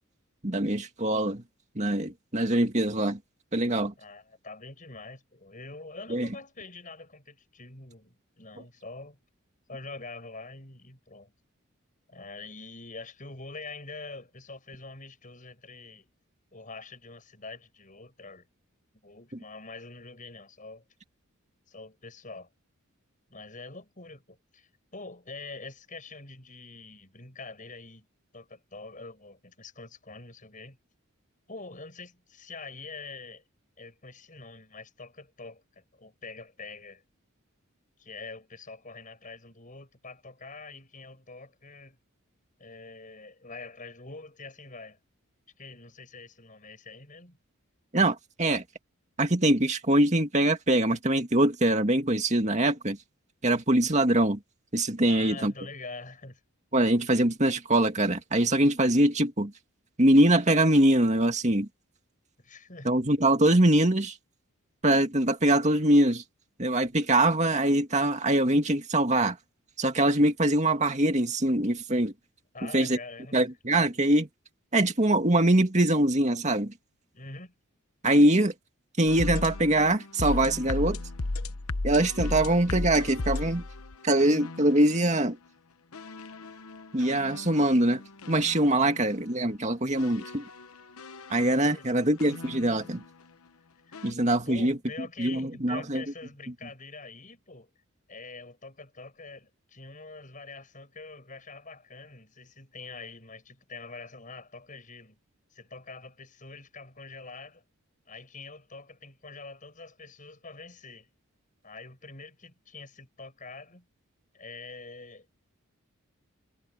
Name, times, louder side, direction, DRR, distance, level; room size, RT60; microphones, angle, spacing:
voice 1, 0.4-1.4 1.8-3.2 3.5-3.9 6.1-6.3 47.9-48.6 49.2-53.0 53.4-54.4 54.7-55.5 56.7-59.5 60.0-61.7 62.8-64.1 64.8-66.2 66.6-69.4 69.8-72.1 72.6-73.0 73.3-74.3 74.7-76.7 78.0-78.5 79.0-81.0 81.8-83.6 84.0-85.4 86.9-88.0 88.3-90.4 91.3-93.0 94.0-94.8 95.2-96.0, right 1 dB, 35° right, 2.2 m, -23 dB
voice 2, 4.0-9.2 9.7-11.3 12.1-16.1 16.5-18.5 19.0-20.8 21.7-22.5 23.3-28.1 28.3-30.8 31.5-33.4 33.8-37.0 38.0-42.0 42.6-45.0 45.6-47.4 55.1-56.4 62.4-62.9 72.5-73.5 77.1-77.5 88.8-89.1 91.7-92.0 93.9-94.1 94.5-97.7 98.1-105.2 105.5-107.6 108.1-111.1 111.6-113.9 114.3-115.3, left 3 dB, 40° left, 7.5 m, -45 dB
sound 1, 79.1-85.1 85.9-89.2 90.0-93.1 93.9-94.1, left 2 dB, 90° left, 1.1 m, -36 dB
head